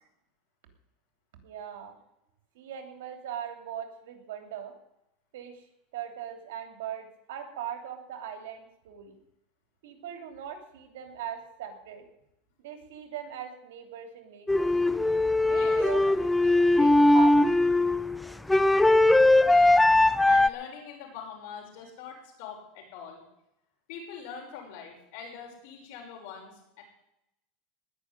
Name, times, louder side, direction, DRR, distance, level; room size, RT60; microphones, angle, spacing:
voice 1, 1.4-2.0 2.5-4.7 5.3-5.6 5.9-9.2 9.8-12.0 12.6-14.7 15.4-17.6, right 9 dB, 85° right, 5 dB, 3.0 m, -40 dB
sound 1, 14.5-20.5, left 2 dB, 5° left, 0.5 m, -20 dB
voice 2, 15.5-16.1 19.5-19.8 20.2-23.2 23.9-26.8, left 7 dB, 70° left, 1 dB, 6.1 m, -43 dB
19.0 x 6.4 x 9.8 m, 0.84 s
supercardioid pair, 135°, 0 cm